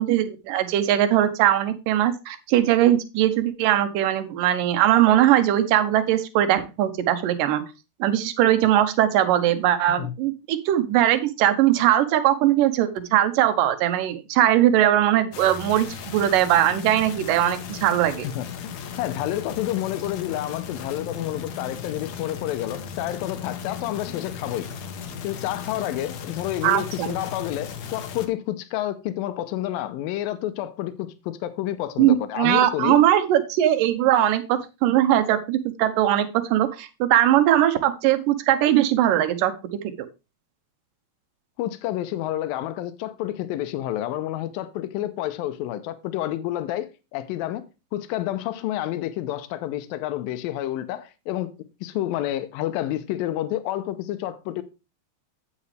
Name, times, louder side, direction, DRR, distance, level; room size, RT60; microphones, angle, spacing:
voice 1, 0.0-7.6 8.0-18.3 26.6-27.1 32.0-39.5 40.0-40.1, right 12 dB, 75° right, 2.4 m, -20 dB
sound 1, 15.3-28.3, left 7 dB, 65° left, 1.9 m, -36 dB
voice 2, 18.2-24.7 25.2-33.0 41.6-47.6 47.9-51.5 51.8-54.6, left 13 dB, 85° left, 2.4 m, -29 dB
9.0 x 8.4 x 3.2 m
omnidirectional pair, 4.2 m